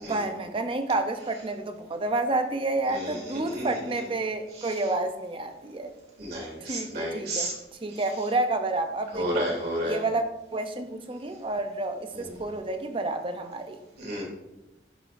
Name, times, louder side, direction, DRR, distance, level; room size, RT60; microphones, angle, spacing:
voice 1, 0.1-5.9 6.7-7.5 7.8-9.5 9.8-13.8, right 2 dB, 30° right, 7 dB, 0.6 m, -29 dB
voice 2, 2.9-3.7 4.6-4.8 6.2-7.5 7.9-8.0 9.1-10.0 12.1-12.4 14.0-14.2, equal, 55° right, -3 dB, 2.6 m, -32 dB
11.0 x 4.9 x 2.5 m, 0.95 s
head